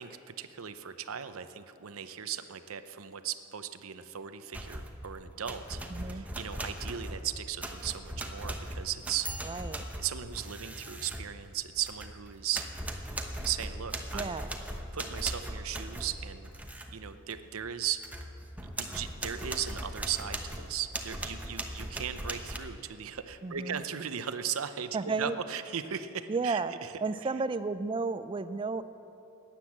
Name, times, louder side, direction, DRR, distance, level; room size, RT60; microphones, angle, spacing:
voice 1, 0.0-5.8 6.1-9.5 10.0-12.7 13.4-14.3 14.9-16.5 16.9-18.0 18.6-26.9, right 9 dB, 75° right, 11 dB, 0.7 m, -37 dB
sound 1, 4.5-5.1 5.5-12.2 12.5-16.9 17.3-17.4 17.8-22.6, right 1 dB, 5° right, 0.9 m, -39 dB
voice 2, 5.9-6.2 9.4-9.8 14.1-14.5 23.4-23.8 24.9-25.4 26.3-26.7 27.0-28.8, right 4 dB, 25° right, 13 dB, 0.4 m, -32 dB
16.0 x 10.0 x 7.3 m, 2.8 s
head